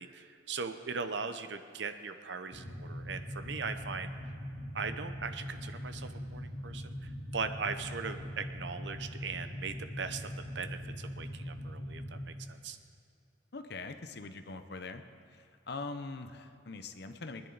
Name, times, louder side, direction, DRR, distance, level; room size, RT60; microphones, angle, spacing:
voice 1, 0.0-4.1 4.7-12.8, right 5 dB, 65° right, 9 dB, 0.8 m, -39 dB
sound 1, 2.5-12.3, equal, 80° left, 2.0 m, -42 dB
voice 2, 13.5-15.0 15.7-17.5, left 3 dB, 55° left, 8 dB, 0.8 m, -42 dB
23.5 x 10.0 x 4.0 m, 2.5 s
head